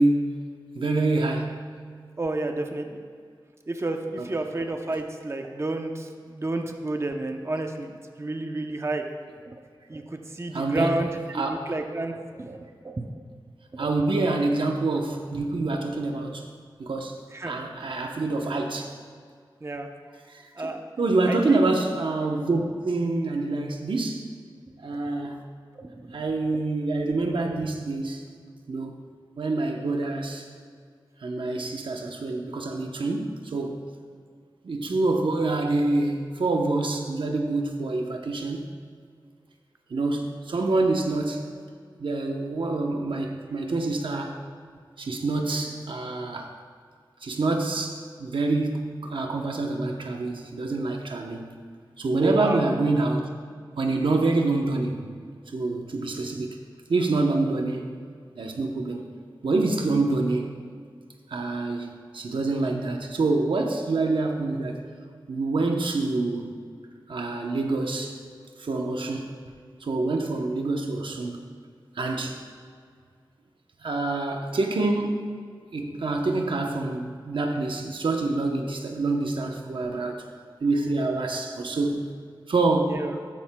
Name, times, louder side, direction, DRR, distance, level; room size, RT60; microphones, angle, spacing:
voice 1, 0.0-1.6 4.2-4.4 10.5-11.7 13.8-16.5 16.8-18.9 20.3-24.3 24.8-25.5 26.1-28.2 28.7-29.0 29.4-30.5 31.2-33.8 34.6-38.7 39.9-41.5 42.0-44.4 45.0-46.5 47.2-51.5 52.0-53.2 53.8-55.1 55.5-56.6 56.9-57.9 58.4-59.1 59.4-60.6 61.3-64.8 65.3-66.5 67.1-68.2 68.6-69.3 69.8-71.5 72.0-72.4 73.8-75.4 75.7-80.2 80.6-82.1 82.5-83.1, right 2 dB, 80° right, 2 dB, 0.9 m, -26 dB
voice 2, 2.2-3.0 3.7-9.1 9.5-9.6 9.9-13.2 13.7-13.9 17.3-17.6 17.9-18.0 19.6-19.9 20.5-20.8 21.3-21.6 25.7-26.2 26.5-26.6 52.1-52.6 82.9-83.2, right 2 dB, 35° right, 4 dB, 0.7 m, -31 dB
13.0 x 10.0 x 2.3 m, 2.1 s
wide cardioid pair, 60°, 8 cm